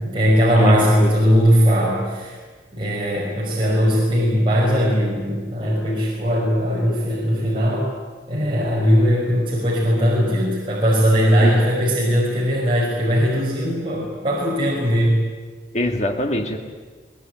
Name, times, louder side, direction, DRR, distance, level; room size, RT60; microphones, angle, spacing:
voice 1, 0.0-2.4 2.7-7.8 8.3-15.2, equal, 30° right, -5 dB, 5.6 m, -19 dB
voice 2, 0.6-1.3 11.4-11.5 15.7-16.6, left 1 dB, 40° left, 3 dB, 2.5 m, -24 dB
22.0 x 20.0 x 9.3 m, 1.4 s
head